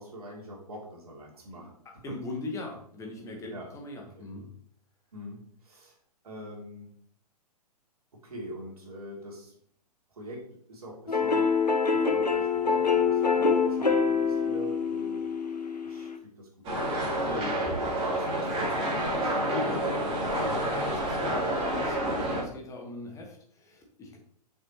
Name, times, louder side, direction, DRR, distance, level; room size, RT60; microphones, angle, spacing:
voice 1, 0.0-1.8 2.1-2.2 3.5-3.7 4.2-4.3 5.1-6.0 6.2-6.9 8.2-9.5 10.1-11.6 11.9-15.3 15.8-17.0 17.3-17.6 17.9-20.0, equal, 65° right, -1 dB, 2.7 m, -44 dB
voice 2, 1.8-4.5 17.2-17.6 19.5-20.0 20.3-24.2, left 2 dB, 15° left, 1 dB, 1.5 m, -40 dB
sound 1, 11.1-16.2, left 5 dB, 85° left, 0.9 m, -25 dB
sound 2, 16.6-22.4, right 1 dB, 25° right, 3.2 m, -29 dB
7.7 x 6.1 x 3.1 m, 0.63 s
figure-of-eight pair, 115°, 20 cm